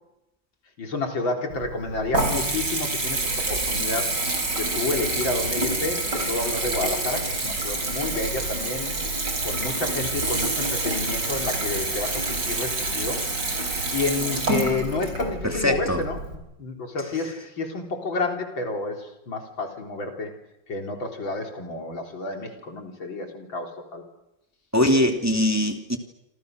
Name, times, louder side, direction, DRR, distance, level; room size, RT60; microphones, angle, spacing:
voice 1, 0.8-3.2 3.5-4.1 4.5-6.0 6.3-9.0 9.4-13.2 13.9-16.2 16.6-20.3 20.7-24.0, left 3 dB, 85° left, 3 dB, 4.6 m, -30 dB
Water tap faucet / Bathtub (filling or washing) / Trickle dribble, 1.5-16.4, right 2 dB, 60° right, 5.2 m, -27 dB
voice 2, 15.4-16.0 24.7-26.0, left 1 dB, 10° right, 5 dB, 2.5 m, -22 dB
28.0 x 27.5 x 6.6 m, 0.91 s
omnidirectional pair, 2.1 m